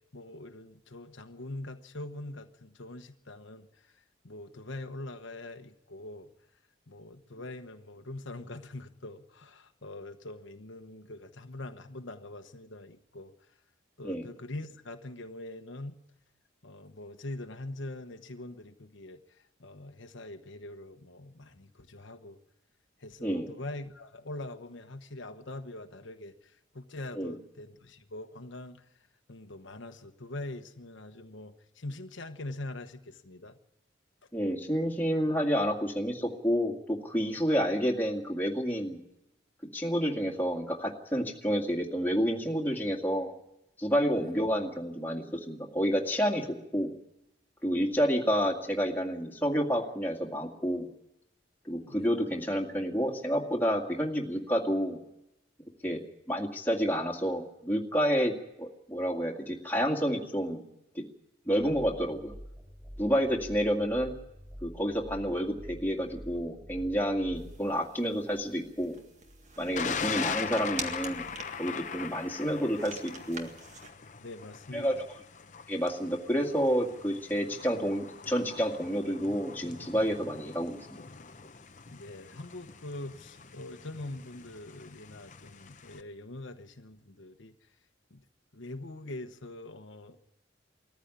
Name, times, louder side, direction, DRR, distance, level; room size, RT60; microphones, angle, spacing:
voice 1, 0.1-3.7 4.2-6.3 6.9-13.3 14.0-16.0 16.6-19.2 19.6-22.4 23.0-28.8 29.3-33.6 51.8-52.1 74.2-75.0 81.9-87.5 88.1-88.2 88.5-90.2, left 2 dB, 90° left, 1.2 m, -43 dB
voice 2, 23.2-23.5 27.1-27.4 34.3-39.0 39.7-43.3 43.8-46.9 47.6-50.9 51.7-55.0 55.8-56.0 56.3-60.6 60.9-61.0 61.5-62.3 63.0-64.1 64.6-69.0 69.6-71.3 71.6-73.5 74.7-75.0 75.7-80.8, equal, 10° left, 2.1 m, -29 dB
sound 1, 61.6-67.6, equal, 15° right, 6.5 m, -47 dB
sound 2, 67.3-73.9, right 4 dB, 40° right, 1.9 m, -46 dB
Thunder, 69.8-86.0, left 6 dB, 40° left, 0.8 m, -41 dB
21.0 x 14.0 x 9.8 m
head